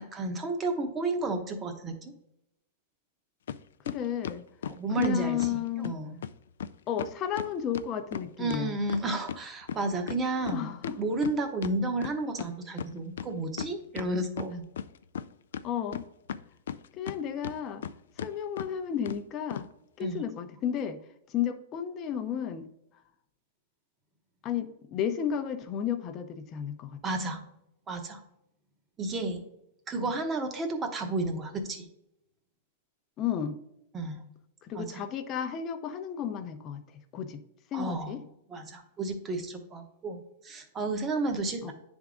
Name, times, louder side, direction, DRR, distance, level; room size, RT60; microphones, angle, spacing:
voice 1, 0.1-2.1 4.7-6.2 8.4-14.6 20.0-20.2 27.0-27.4 27.9-28.2 29.0-29.4 29.9-31.8 33.9-34.2 34.7-35.0 37.7-38.1 38.5-41.7, right 2 dB, 15° right, 5 dB, 0.9 m, -32 dB
sound 1, 3.5-3.6 3.9-5.6 5.8-5.9 6.2-6.3 6.6-6.7 7.0-9.4 9.7-12.5 12.8-12.9 13.2-14.1 14.4-15.3 15.5-17.2 17.4-17.9 18.2-18.3 18.6-18.7 19.1-19.2 19.5-19.7, left 8 dB, 85° left, 0.3 m, -36 dB
voice 2, 3.9-4.5 5.0-6.0 6.9-8.8 10.5-11.0 15.6-16.0 17.0-17.8 18.2-19.7 20.0-21.0 21.3-22.7 24.4-27.0 30.0-30.1 33.2-33.6 34.6-36.8 37.1-37.4 37.7-38.2 41.6-41.7, left 9 dB, 25° left, 9 dB, 0.6 m, -33 dB
9.4 x 3.6 x 3.7 m, 0.81 s
supercardioid pair, 160°, 0 cm